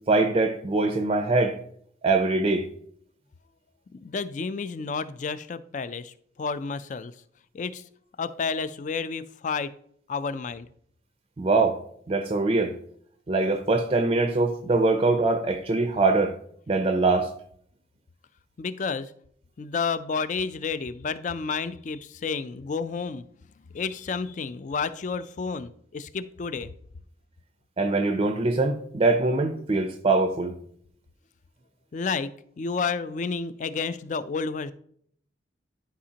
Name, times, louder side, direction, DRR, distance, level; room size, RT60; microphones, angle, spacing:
voice 1, 0.1-1.6 2.0-2.7 11.4-11.8 12.1-12.7 13.3-16.4 16.7-17.3 27.8-30.6, right 3 dB, 30° right, 0.4 m, -23 dB
voice 2, 4.0-6.1 6.4-7.1 7.5-7.8 8.2-9.7 10.1-10.7 18.6-19.1 19.6-23.2 23.7-26.7 31.9-32.3 32.6-34.7, left 5 dB, 40° left, 0.3 m, -30 dB
11.0 x 5.0 x 2.8 m
head